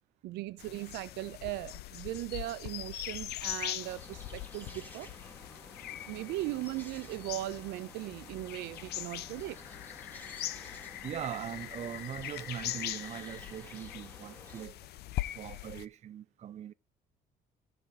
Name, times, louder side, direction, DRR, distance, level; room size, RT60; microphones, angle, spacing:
voice 1, 0.2-5.1 6.1-9.6, right 17 dB, 90° right, 0.9 m, -38 dB
sound 1, 0.6-15.8, left 14 dB, 70° left, 0.7 m, -41 dB
sound 2, 3.8-14.7, left 1 dB, 10° left, 3.2 m, -52 dB
voice 2, 11.0-14.8 15.3-16.7, right 10 dB, 40° right, 0.5 m, -41 dB
17.0 x 5.7 x 3.2 m
cardioid pair, 110°, 17 cm